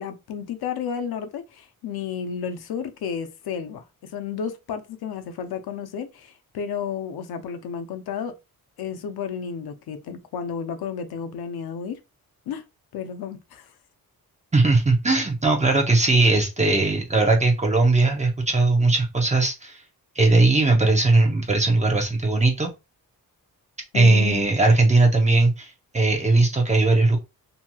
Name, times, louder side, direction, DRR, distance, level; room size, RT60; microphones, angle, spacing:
voice 1, 0.0-8.4 8.8-12.0 12.5-12.6 12.9-13.7 20.7-20.8 23.9-24.4, left 7 dB, 85° left, 0.6 m, -32 dB
voice 2, 14.5-19.8 20.2-22.7 23.9-27.2, right 2 dB, 20° right, 0.6 m, -19 dB
2.9 x 2.7 x 2.2 m
wide cardioid pair, 160°, 36 cm